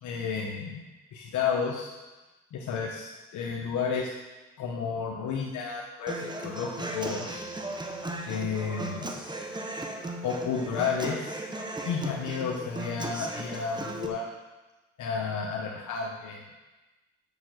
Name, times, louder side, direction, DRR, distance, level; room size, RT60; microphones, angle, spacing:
voice 1, 0.0-0.8 1.1-1.9 2.5-4.1 4.6-7.4 8.3-9.1 10.2-11.4 11.8-14.3 15.0-16.4, left 6 dB, 75° left, -1 dB, 1.1 m, -32 dB
Human voice / Acoustic guitar, 6.1-14.1, right 2 dB, 15° right, 1.2 m, -36 dB
7.0 x 6.9 x 6.5 m, 1.1 s
cardioid pair, 90°, 30 cm